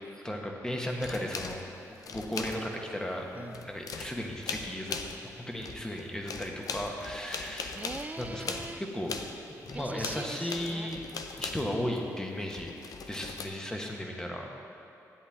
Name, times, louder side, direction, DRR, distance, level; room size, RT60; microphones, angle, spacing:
voice 1, 0.2-5.0 5.2-7.8 8.2-8.5 8.8-9.2 9.5-11.1 11.4-12.7 13.1-14.5, left 1 dB, 10° left, 1 dB, 1.3 m, -35 dB
sound 1, 1.0-3.0 3.3-5.3 5.6-12.0 12.5-13.5, left 5 dB, 65° left, 0.6 m, -40 dB
voice 2, 3.3-3.7 7.7-8.8 9.7-10.9 11.5-12.2, right 3 dB, 25° right, 10 dB, 0.4 m, -42 dB
10.5 x 8.2 x 3.6 m, 2.8 s
supercardioid pair, 55°, 7 cm